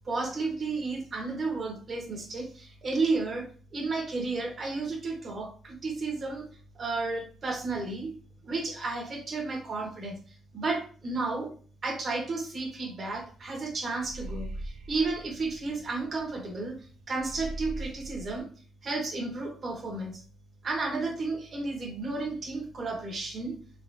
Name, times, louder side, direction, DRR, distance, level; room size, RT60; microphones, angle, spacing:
voice 1, 0.1-3.4 3.7-6.5 6.8-8.1 8.4-10.1 10.5-11.5 11.8-16.8 17.1-18.5 18.8-20.2 20.6-23.5, right 3 dB, 45° right, -1 dB, 1.8 m, -32 dB
sound 1, 13.1-13.3 13.6-16.4 16.7-16.8 17.1-18.4, right 1 dB, 75° right, 0.6 m, -40 dB
4.2 x 3.4 x 2.8 m, 0.41 s
cardioid pair, 90°, 0 cm